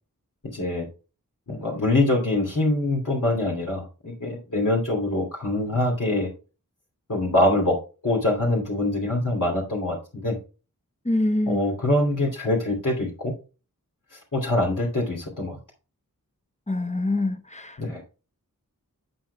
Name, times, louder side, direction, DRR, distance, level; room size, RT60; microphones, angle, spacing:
voice 1, 0.4-0.9 1.5-6.3 7.1-7.8 8.0-10.4 11.5-13.3 14.3-15.6 17.8-18.0, left 1 dB, 65° left, 2.9 m, -24 dB
voice 2, 11.0-11.6 16.7-17.8, left 2 dB, 20° left, 1.1 m, -25 dB
11.5 x 7.6 x 2.3 m
wide cardioid pair, 45°, 33 cm